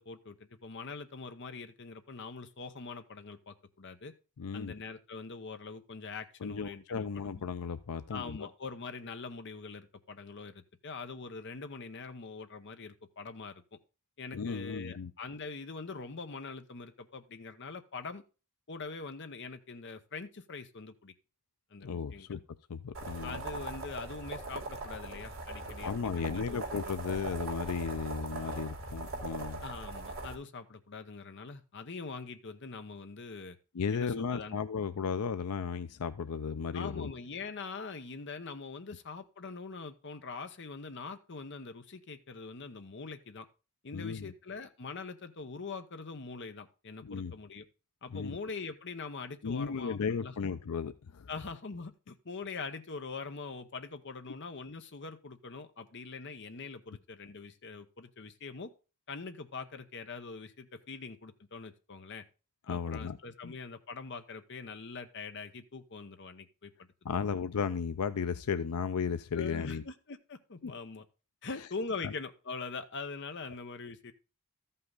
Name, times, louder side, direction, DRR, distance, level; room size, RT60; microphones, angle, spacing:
voice 1, 0.0-4.1 4.5-7.5 8.1-13.6 14.2-18.2 18.7-21.1 21.7-22.4 23.2-26.6 29.6-33.6 33.9-34.6 36.7-43.5 43.8-47.6 48.0-50.3 51.3-58.7 59.1-62.2 62.7-66.9 67.1-67.3 69.3-71.0 71.4-74.1, left 4 dB, 55° left, 0.9 m, -43 dB
voice 2, 4.4-4.8 6.4-8.4 14.3-15.1 21.8-22.4 22.7-23.4 25.8-29.6 33.7-37.1 43.9-44.3 47.0-47.3 48.1-48.4 49.4-51.3 62.7-63.2 63.4-63.5 67.0-69.8 70.6-70.7 72.0-72.1, left 6 dB, 85° left, 0.5 m, -35 dB
sound 1, 22.9-30.3, right 2 dB, 60° right, 2.8 m, -40 dB
13.5 x 5.7 x 3.8 m
head